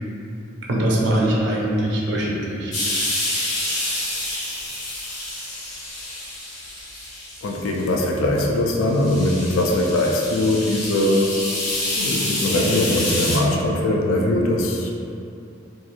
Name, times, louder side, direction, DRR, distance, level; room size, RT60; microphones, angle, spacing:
voice 1, 0.7-3.1, right 1 dB, 60° right, -4 dB, 0.5 m, -22 dB
sound 1, 2.7-7.9 8.4-8.5 8.9-13.4, left 1 dB, 40° left, 0.7 m, -28 dB
voice 2, 7.4-11.3 12.0-14.9, left 1 dB, 90° left, 0 dB, 0.4 m, -21 dB
2.9 x 2.4 x 2.4 m, 2.6 s
head